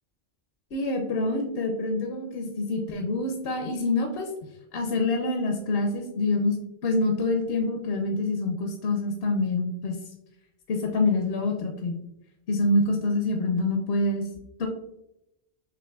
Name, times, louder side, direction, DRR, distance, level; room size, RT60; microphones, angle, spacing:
voice 1, 0.7-4.3 4.7-6.6 6.8-10.0 10.7-12.0 12.5-14.2 14.6-14.7, left 2 dB, 65° left, 3 dB, 0.8 m, -26 dB
6.1 x 3.0 x 2.2 m, 0.85 s
omnidirectional pair, 1.2 m